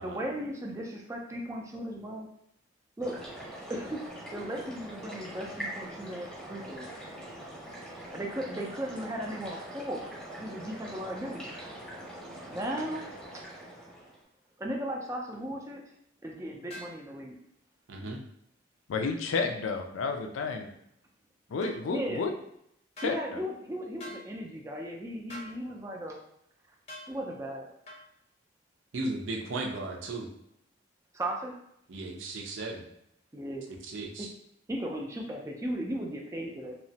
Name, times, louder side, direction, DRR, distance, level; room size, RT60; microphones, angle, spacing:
voice 1, 0.0-2.3 3.0-3.2 3.7-4.0 4.3-6.9 8.1-10.1 10.4-11.5 12.5-13.0 14.6-15.8 16.2-17.4 21.9-22.2 23.0-26.2 27.1-27.7 31.1-31.5 33.3-33.7 34.2-34.3 34.7-36.7, equal, 15° right, 0 dB, 0.3 m, -36 dB
sound 1, 3.0-14.2, right 1 dB, ahead, 0.8 m, -43 dB
sound 2, 16.7-17.0 21.6-21.8 23.0-23.2 24.0-24.2 25.3-25.5 26.9-27.1 27.9-28.0, equal, 30° left, 0.6 m, -44 dB
voice 2, 17.9-18.2 28.9-30.3 31.9-32.9 33.8-34.3, right 2 dB, 70° right, 0 dB, 0.5 m, -36 dB
voice 3, 18.9-20.7 21.5-22.3 23.0-23.4, left 4 dB, 75° left, 4 dB, 0.4 m, -31 dB
2.9 x 2.1 x 2.7 m, 0.75 s
head